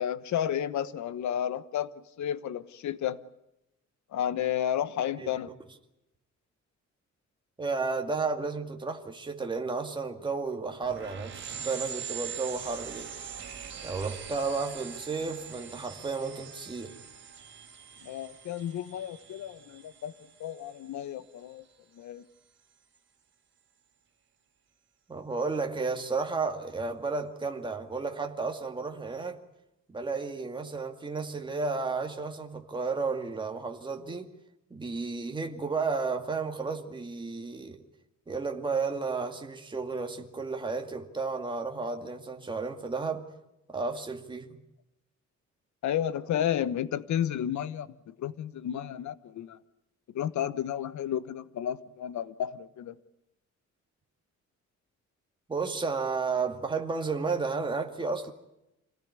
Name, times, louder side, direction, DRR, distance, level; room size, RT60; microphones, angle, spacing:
voice 1, 0.0-3.2 4.1-5.5 18.0-20.1 20.4-21.6 21.9-22.2 45.8-49.6 50.1-52.9, left 10 dB, 75° left, 1.2 m, -32 dB
voice 2, 7.6-13.1 13.8-17.0 25.1-29.4 29.9-34.3 34.7-37.9 38.3-43.3 43.7-44.6 55.5-58.3, right 4 dB, 15° right, 2.3 m, -32 dB
sound 1, 10.8-21.0, right 8 dB, 40° right, 4.1 m, -43 dB
26.5 x 18.0 x 9.8 m
cardioid pair, 165°, 29 cm